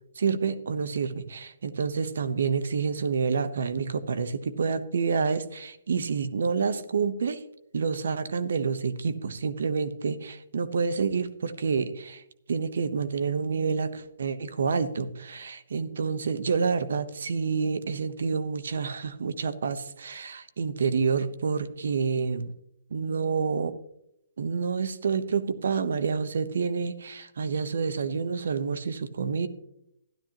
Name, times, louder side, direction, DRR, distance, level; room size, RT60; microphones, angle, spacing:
voice 1, 0.2-7.4 7.7-12.2 12.5-22.5 22.9-23.7 24.4-29.5, right 5 dB, 70° right, 13 dB, 0.9 m, -28 dB
13.0 x 11.5 x 2.9 m, 0.78 s
hypercardioid pair, 145°, 0 cm